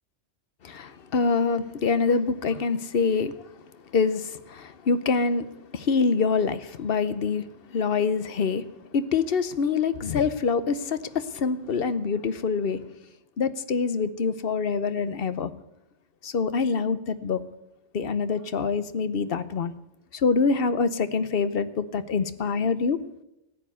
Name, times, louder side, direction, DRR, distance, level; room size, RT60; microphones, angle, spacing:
voice 1, 0.6-3.4 3.9-8.7 8.9-12.8 13.4-15.5 16.2-17.4 17.9-19.7 20.1-23.0, left 5 dB, 55° left, 1.0 m, -25 dB
14.0 x 9.6 x 8.2 m
omnidirectional pair, 1.2 m